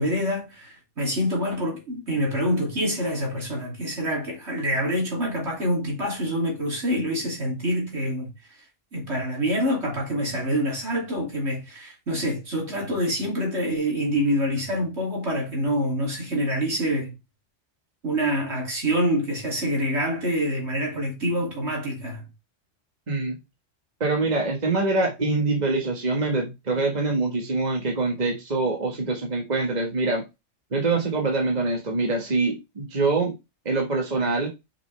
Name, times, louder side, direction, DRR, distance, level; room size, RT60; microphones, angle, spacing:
voice 1, 0.0-8.3 8.9-17.1 18.0-22.2, equal, 60° right, 3.3 m, -26 dB
voice 2, 24.0-30.2 30.7-33.3 33.6-34.5, right 3 dB, 35° right, 1.6 m, -24 dB
6.6 x 5.7 x 3.4 m
omnidirectional pair, 1.3 m